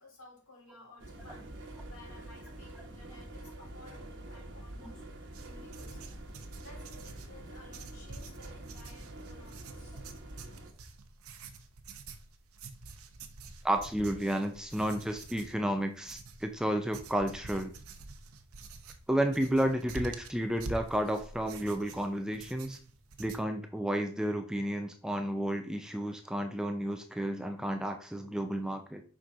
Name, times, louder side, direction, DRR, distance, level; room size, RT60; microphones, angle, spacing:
voice 1, 0.0-5.0 5.4-6.1 6.6-10.1, left 2 dB, 75° left, -2 dB, 3.6 m, -56 dB
sound 1, 1.0-10.7, right 1 dB, 55° right, 1.2 m, -46 dB
sound 2, 5.3-23.4, right 3 dB, 80° right, 0.8 m, -47 dB
voice 2, 13.6-17.7 19.1-22.8 23.2-29.0, right 1 dB, 5° right, 6 dB, 0.5 m, -32 dB
6.1 x 4.9 x 3.8 m, 0.42 s
head